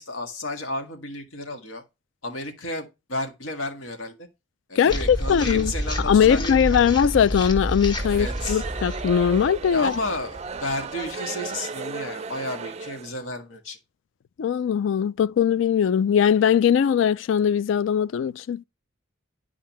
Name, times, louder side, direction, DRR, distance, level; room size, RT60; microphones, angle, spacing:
voice 1, 0.0-1.8 2.2-4.3 4.7-6.8 8.1-8.6 9.7-13.8, left 1 dB, 90° left, 1.8 m, -32 dB
voice 2, 4.8-5.7 6.1-9.9 14.4-18.6, left 8 dB, 70° left, 0.3 m, -20 dB
sound 1, 4.9-11.1, equal, 25° left, 1.5 m, -30 dB
sound 2, 8.0-13.1, right 5 dB, 35° right, 0.4 m, -35 dB
10.0 x 4.9 x 3.0 m
head